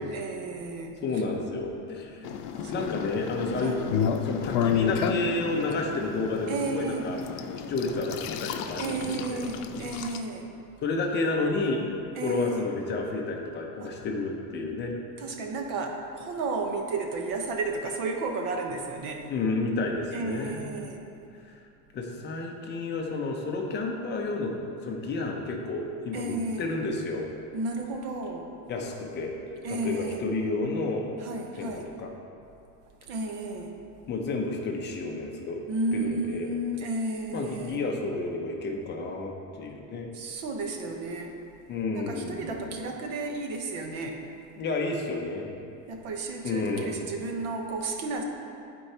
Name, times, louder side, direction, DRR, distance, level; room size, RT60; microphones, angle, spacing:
voice 1, 0.0-1.2 2.6-2.9 3.6-3.8 6.5-7.1 8.8-10.5 12.1-12.6 13.8-13.9 15.2-19.2 20.1-21.0 26.1-26.7 27.5-28.4 29.6-30.2 31.2-31.9 33.1-33.7 35.7-37.8 40.1-41.3 41.9-44.2 45.9-48.2, right 2 dB, 45° right, 2 dB, 0.9 m, -33 dB
voice 2, 1.0-2.3 2.7-3.8 4.2-7.2 7.7-9.4 9.7-9.8 10.8-11.9 12.2-14.9 19.3-20.6 21.9-24.5 24.8-27.3 28.7-29.4 29.7-31.1 31.5-32.1 34.1-35.6 35.9-36.6 37.3-40.1 41.7-42.8 44.6-45.5 46.4-47.0, left 3 dB, 25° left, 1 dB, 0.6 m, -31 dB
sound 1, 2.2-10.2, left 7 dB, 90° left, 0.7 m, -31 dB
12.0 x 4.6 x 2.8 m, 2.7 s
supercardioid pair, 155°, 46 cm